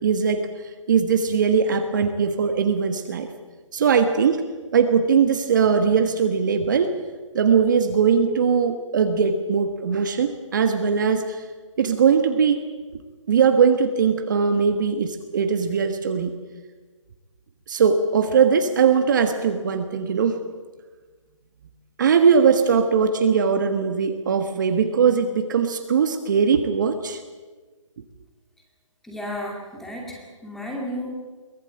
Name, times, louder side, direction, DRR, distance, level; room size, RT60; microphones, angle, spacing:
voice 1, 0.0-3.3 3.7-4.4 4.7-6.9 7.3-11.4 11.8-12.6 13.3-16.3 17.7-20.4 22.0-27.2, right 6 dB, 35° right, 6 dB, 1.5 m, -20 dB
voice 2, 29.0-31.1, left 1 dB, ahead, -1 dB, 2.3 m, -33 dB
23.0 x 17.0 x 8.8 m, 1.4 s
hypercardioid pair, 165°, 17 cm